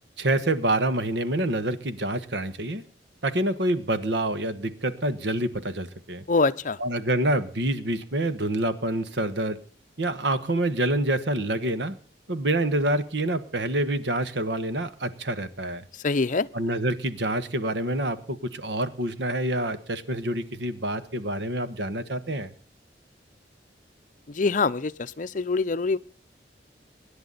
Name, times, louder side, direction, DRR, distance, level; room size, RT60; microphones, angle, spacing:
voice 1, 0.2-2.8 3.2-6.2 6.8-9.6 10.0-11.9 12.3-15.8 16.5-22.5, right 1 dB, 75° right, 1.4 m, -27 dB
voice 2, 6.3-6.8 15.9-16.5 24.3-26.0, left 3 dB, 45° left, 0.6 m, -25 dB
24.5 x 10.5 x 4.0 m
head